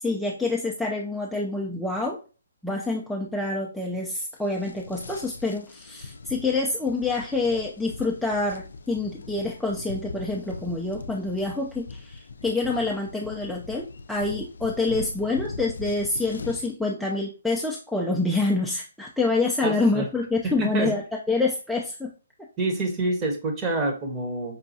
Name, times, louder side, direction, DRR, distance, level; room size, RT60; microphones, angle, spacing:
voice 1, 0.0-2.2 2.6-22.1, left 3 dB, ahead, -3 dB, 0.4 m, -27 dB
sound 1, 4.4-16.7, left 3 dB, 70° left, 0.4 m, -41 dB
voice 2, 19.6-20.0 20.6-20.9 22.6-24.6, right 2 dB, 20° right, 2 dB, 0.9 m, -27 dB
5.3 x 2.2 x 2.7 m, 0.35 s
figure-of-eight pair, 140°, 0 cm